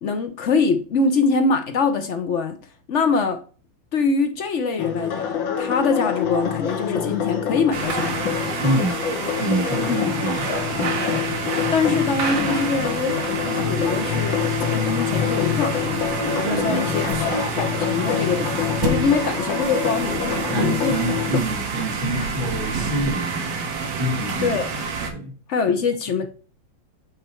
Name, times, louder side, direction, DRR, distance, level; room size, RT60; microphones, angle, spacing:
voice 1, 0.0-2.6 2.9-3.4 3.9-8.2 9.9-10.1 11.7-17.0 17.6-21.0 24.4-24.7 25.5-26.3, left 4 dB, 60° left, 0.7 m, -24 dB
sound 1, 4.8-21.4, left 9 dB, 75° left, 1.8 m, -26 dB
sound 2, 7.7-25.1, right 4 dB, 65° right, 1.6 m, -28 dB
voice 2, 8.6-9.0 9.4-11.0 16.5-17.4 17.8-18.0 19.0-19.1 20.5-23.7 24.0-24.6 25.1-25.3, right 1 dB, 85° right, 3.0 m, -27 dB
8.5 x 3.3 x 4.4 m
omnidirectional pair, 2.1 m